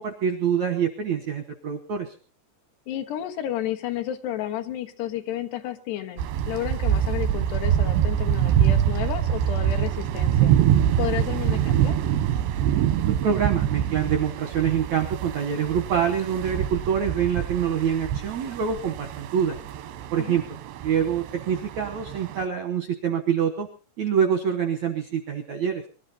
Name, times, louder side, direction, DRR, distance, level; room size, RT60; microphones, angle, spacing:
voice 1, 0.0-2.1 13.1-19.6 20.1-20.4 20.8-23.7 24.0-25.8, right 8 dB, 75° right, 6 dB, 1.7 m, -25 dB
voice 2, 2.9-10.5 11.0-12.0 20.1-20.4, left 12 dB, 75° left, 6 dB, 3.3 m, -32 dB
sound 1, 6.2-22.4, right 10 dB, 90° right, 3.5 m, -25 dB
23.5 x 12.5 x 4.1 m, 0.37 s
omnidirectional pair, 4.9 m